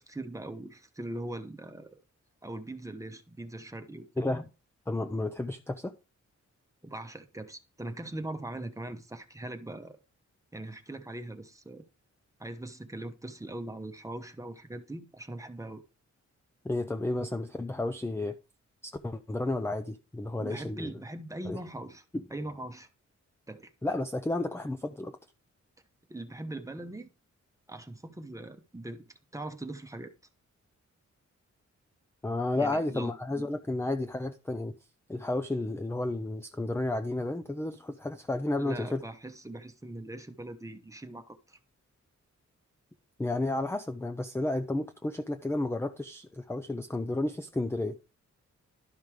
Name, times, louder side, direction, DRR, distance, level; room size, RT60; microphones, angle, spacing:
voice 1, 0.0-2.0 2.4-4.1 6.8-10.0 10.5-11.8 12.4-15.8 20.4-22.0 22.3-22.9 23.5-23.7 26.1-27.1 27.7-29.1 29.3-30.1 32.5-33.5 38.6-41.6, right 1 dB, 10° right, 1.0 m, -41 dB
voice 2, 4.2-4.5 4.9-6.0 16.6-18.3 18.8-20.9 21.4-21.6 22.1-22.2 23.8-25.2 32.2-34.7 35.1-39.0 43.2-48.0, left 2 dB, 10° left, 0.6 m, -32 dB
12.0 x 5.3 x 4.8 m
wide cardioid pair, 175°, 29 cm